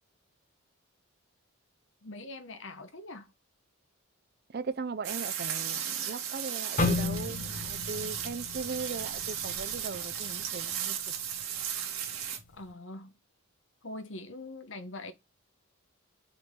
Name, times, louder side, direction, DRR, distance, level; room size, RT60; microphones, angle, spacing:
voice 1, 2.0-3.3 12.5-13.1 13.8-15.1, left 2 dB, 55° left, 1.2 m, -43 dB
voice 2, 4.5-11.0, right 4 dB, 45° right, 0.5 m, -38 dB
sound 1, 5.0-12.4, right 9 dB, 75° right, 2.1 m, -35 dB
sound 2, 6.8-10.8 11.2-11.4 12.1-12.4, left 3 dB, 35° left, 1.3 m, -34 dB
5.8 x 4.4 x 3.7 m
head